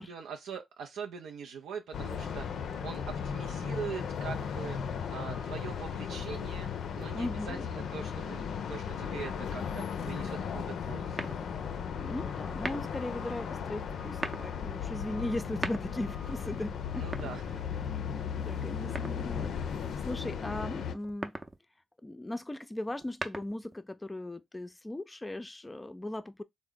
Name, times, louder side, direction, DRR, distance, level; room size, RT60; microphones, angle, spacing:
voice 1, 0.0-6.7 6.9-11.2 17.0-17.6, right 6 dB, 85° right, 0.4 m, -42 dB
sound 1, 1.9-20.9, left 7 dB, 75° left, 0.4 m, -36 dB
voice 2, 7.1-7.7 12.0-17.1 18.5-21.4 22.0-26.4, left 1 dB, 20° left, 0.4 m, -38 dB
sound 2, 11.1-11.7 12.5-13.1 14.0-14.5 15.4-16.2 17.0-17.9 18.9-19.6 21.0-21.6 22.9-23.8, right 2 dB, 30° right, 0.6 m, -39 dB
3.3 x 2.0 x 3.6 m
supercardioid pair, 50°, 0 cm